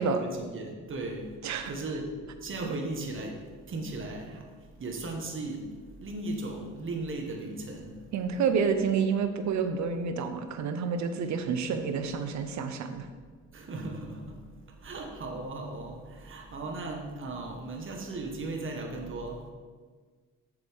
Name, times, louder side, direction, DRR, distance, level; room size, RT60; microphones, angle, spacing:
voice 1, 0.0-1.3 1.7-2.1 2.4-3.4 3.7-4.4 4.8-5.6 6.0-7.9 13.5-14.3 14.8-19.4, right 2 dB, 40° right, 2 dB, 1.4 m, -36 dB
voice 2, 8.1-13.1, right 6 dB, 65° right, 8 dB, 0.8 m, -29 dB
8.1 x 6.7 x 3.6 m, 1.5 s
cardioid pair, 90°, 30 cm